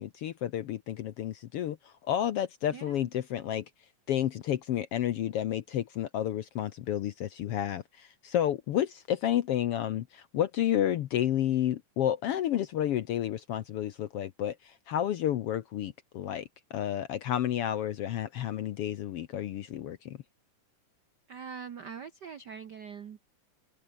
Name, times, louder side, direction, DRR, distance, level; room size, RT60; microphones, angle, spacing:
voice 1, 0.0-3.6 4.1-20.2, left 11 dB, 70° left, 1.5 m, -31 dB
voice 2, 2.7-3.1 21.3-23.3, right 6 dB, 70° right, 1.0 m, -43 dB
open air
omnidirectional pair, 3.5 m